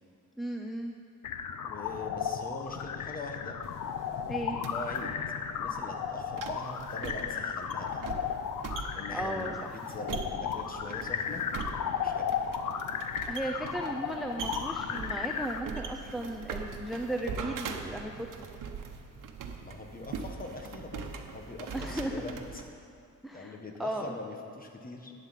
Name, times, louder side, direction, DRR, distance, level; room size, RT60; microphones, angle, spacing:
voice 1, 0.4-0.9 4.3-4.6 9.1-9.7 13.3-18.3 21.7-22.2 23.2-24.2, right 1 dB, ahead, 2 dB, 0.5 m, -36 dB
sound 1, 1.2-15.6, left 7 dB, 70° left, 0.7 m, -35 dB
voice 2, 1.6-3.6 4.5-5.1 5.4-8.1 8.9-11.4 12.0-12.3 19.6-21.1 21.3-22.4 23.3-25.1, left 2 dB, 25° left, 3 dB, 1.4 m, -42 dB
sound 2, 3.6-22.7, right 5 dB, 70° right, 1.1 m, -42 dB
11.5 x 9.3 x 7.4 m, 2.4 s
wide cardioid pair, 145°, 32 cm